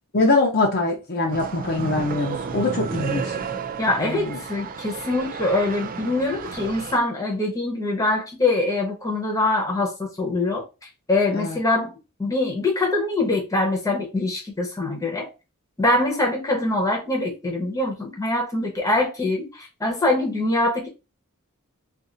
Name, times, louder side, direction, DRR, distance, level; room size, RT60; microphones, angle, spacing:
voice 1, 0.1-3.3 4.0-4.4 11.3-11.6, left 2 dB, 45° left, 0.7 m, -23 dB
sound 1, 1.3-7.0, right 5 dB, 40° right, 0.3 m, -32 dB
voice 2, 3.8-10.6 11.1-11.9 12.2-15.3 15.8-20.9, left 2 dB, 15° left, 0.9 m, -23 dB
2.6 x 2.6 x 3.8 m
head